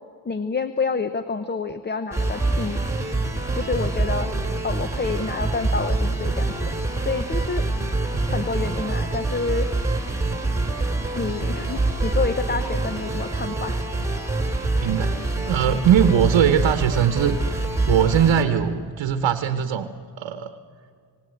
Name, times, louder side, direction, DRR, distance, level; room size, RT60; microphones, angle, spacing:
voice 1, 0.2-2.8 3.5-4.3 4.6-6.7 7.0-7.6 8.3-9.7 11.1-13.8, left 4 dB, 25° left, 10 dB, 0.8 m, -28 dB
sound 1, 2.1-18.4, right 2 dB, 5° right, 2.7 m, -25 dB
voice 2, 14.8-15.2 15.5-17.4 17.9-20.5, right 8 dB, 80° right, 8 dB, 1.0 m, -20 dB
26.5 x 17.5 x 9.2 m, 2.1 s
cardioid pair, 115°, 44 cm